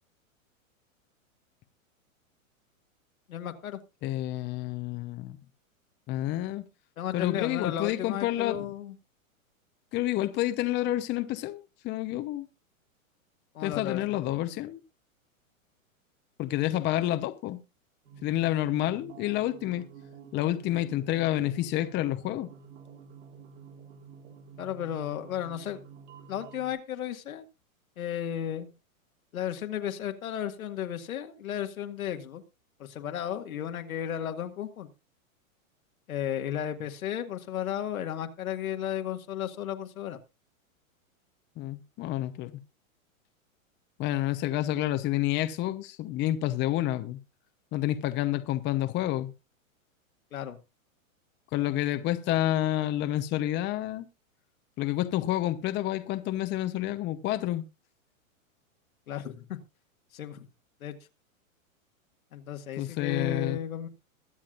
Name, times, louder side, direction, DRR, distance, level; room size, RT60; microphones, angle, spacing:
voice 1, 3.3-3.8 7.0-8.9 13.5-14.2 24.6-25.8 26.3-27.5 28.0-28.7 29.3-32.4 32.8-34.9 36.1-40.2 50.3-50.6 59.1-59.6 60.1-60.5 60.8-60.9 62.3-63.9, left 10 dB, 80° left, 1.9 m, -34 dB
voice 2, 4.0-5.4 6.1-6.6 7.1-8.7 9.9-12.5 13.6-14.8 16.4-17.6 18.2-19.9 20.3-22.5 41.6-42.5 44.0-47.2 47.7-49.3 51.5-54.1 54.8-57.6 62.8-63.6, left 14 dB, 25° left, 0.8 m, -29 dB
sound 1, 18.0-26.7, right 7 dB, 60° right, 3.7 m, -49 dB
22.0 x 7.4 x 2.5 m
hypercardioid pair, 125°, 41 cm